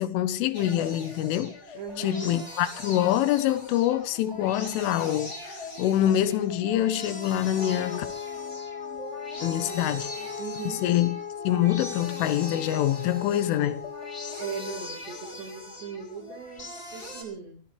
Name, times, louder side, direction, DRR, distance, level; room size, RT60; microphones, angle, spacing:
voice 1, 0.0-1.6 2.0-8.1 9.4-10.1 10.8-11.2 11.5-13.8, left 12 dB, 90° left, 3.6 m, -25 dB
sound 1, 0.5-17.2, left 1 dB, 15° left, 4.8 m, -41 dB
voice 2, 1.7-2.4 9.6-10.8 14.4-17.6, right 6 dB, 60° right, 6.5 m, -39 dB
Wind instrument woodwind instrument, 7.6-15.0, left 8 dB, 65° left, 2.4 m, -38 dB
24.0 x 17.0 x 3.4 m
omnidirectional pair, 5.5 m